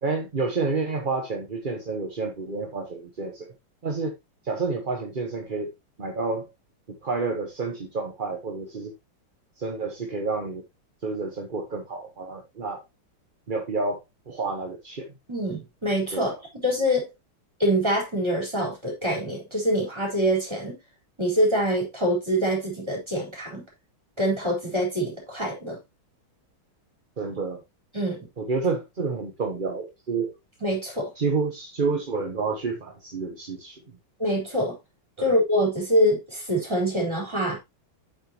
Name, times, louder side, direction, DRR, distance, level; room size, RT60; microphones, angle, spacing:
voice 1, 0.0-3.5 3.8-4.1 4.4-5.7 6.0-6.5 7.0-8.9 9.6-10.6 11.0-12.8 13.5-15.1 16.1-16.4 27.2-27.6 28.4-30.3 31.2-33.8 35.2-35.3, right 4 dB, 30° right, 1.1 m, -29 dB
voice 2, 15.3-16.3 16.6-17.1 17.6-20.8 21.2-23.6 24.2-25.8 27.9-28.2 30.6-31.1 34.2-34.7 35.2-37.6, equal, 15° right, 4.2 m, -25 dB
8.3 x 6.5 x 3.0 m
omnidirectional pair, 2.2 m